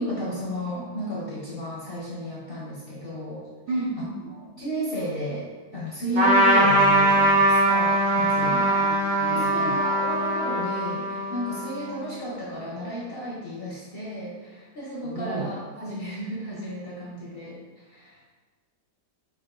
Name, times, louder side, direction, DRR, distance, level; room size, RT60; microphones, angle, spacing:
voice 1, 0.0-3.8 4.3-8.7 9.3-18.2, equal, 50° left, -6 dB, 0.7 m, -33 dB
voice 2, 3.7-4.3 8.4-9.8 15.0-15.5, right 3 dB, 75° right, -1 dB, 1.3 m, -32 dB
Trumpet, 6.1-12.0, right 1 dB, 40° right, 0.9 m, -21 dB
5.0 x 2.6 x 3.7 m, 1.3 s
omnidirectional pair, 1.8 m